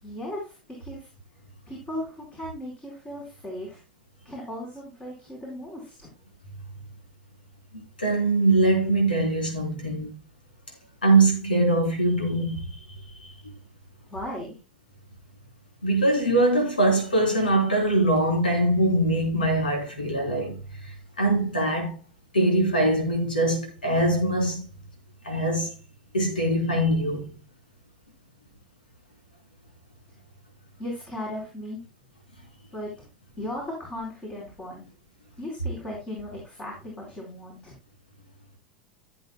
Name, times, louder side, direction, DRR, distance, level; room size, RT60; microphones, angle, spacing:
voice 1, 0.0-1.1 1.7-3.8 4.2-6.1 14.1-14.6 30.8-31.8 32.7-32.9 33.4-34.9 35.4-37.7, left 1 dB, 20° left, 4.7 m, -36 dB
voice 2, 8.0-10.2 11.0-12.7 15.8-20.6 21.2-21.9 22.3-24.6 25.2-25.7 26.1-27.4, right 2 dB, 85° left, 3.7 m, -22 dB
16.0 x 7.8 x 2.3 m
figure-of-eight pair, 85°, 5 cm